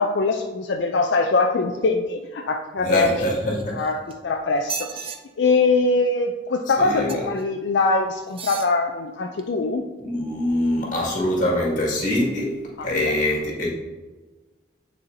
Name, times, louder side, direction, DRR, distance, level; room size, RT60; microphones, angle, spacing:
voice 1, 0.0-3.2 3.7-5.1 5.4-9.9 12.8-13.1, left 3 dB, 70° left, 3 dB, 0.4 m, -22 dB
voice 2, 2.8-3.8 6.8-7.1 10.1-12.5 12.8-13.8, left 1 dB, 45° left, -4 dB, 2.0 m, -24 dB
sound 1, 3.4-4.1 4.6-5.2 7.1-7.4 8.3-8.7 9.4-9.5, right 6 dB, 30° right, 0.4 m, -34 dB
9.5 x 4.2 x 2.7 m, 1.3 s
head